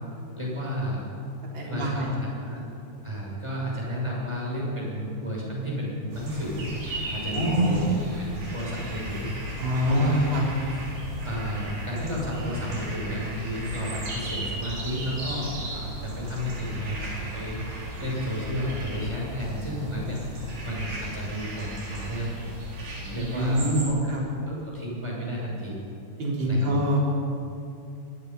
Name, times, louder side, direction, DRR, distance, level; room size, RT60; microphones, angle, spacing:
voice 1, 0.1-1.1 1.6-2.7 3.0-6.7 6.9-7.8 8.2-9.3 9.6-10.2 11.2-22.4 23.0-24.0 24.5-25.8 26.5-26.7, equal, 5° right, -4 dB, 6.2 m, -32 dB
voice 2, 1.5-2.1 7.3-7.8 9.6-10.4 23.1-24.2 26.2-27.0, equal, 30° right, -4 dB, 4.5 m, -24 dB
sound 1, 6.1-23.8, right 1 dB, 70° right, 6.8 m, -36 dB
24.0 x 19.5 x 5.6 m, 2.7 s
omnidirectional pair, 4.5 m